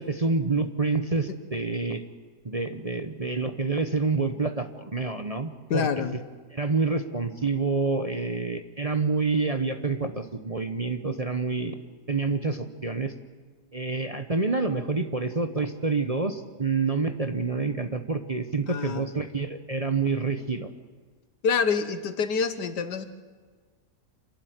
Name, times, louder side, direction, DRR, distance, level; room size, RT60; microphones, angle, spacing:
voice 1, 0.0-2.0 2.4-5.9 6.5-13.1 13.7-20.7, right 4 dB, 25° right, 7 dB, 0.9 m, -28 dB
voice 2, 5.7-6.1 18.7-19.1 21.4-23.1, left 6 dB, 85° left, 10 dB, 1.9 m, -26 dB
27.5 x 12.5 x 9.5 m, 1.5 s
omnidirectional pair, 1.8 m